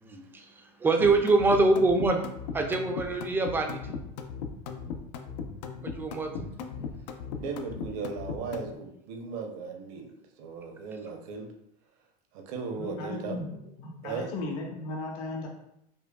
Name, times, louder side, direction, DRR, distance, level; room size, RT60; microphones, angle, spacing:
voice 1, 0.0-0.5 0.8-2.2 2.5-3.8 5.8-6.5, right 3 dB, 10° right, 4 dB, 0.4 m, -24 dB
sound 1, 1.0-8.7, left 6 dB, 90° left, 0.5 m, -37 dB
voice 2, 7.4-11.5 12.3-13.4 14.0-14.3, right 5 dB, 60° right, 3 dB, 0.7 m, -37 dB
voice 3, 12.7-15.5, left 2 dB, 70° left, -1 dB, 0.9 m, -36 dB
5.2 x 2.2 x 2.2 m, 0.78 s
supercardioid pair, 135°, 21 cm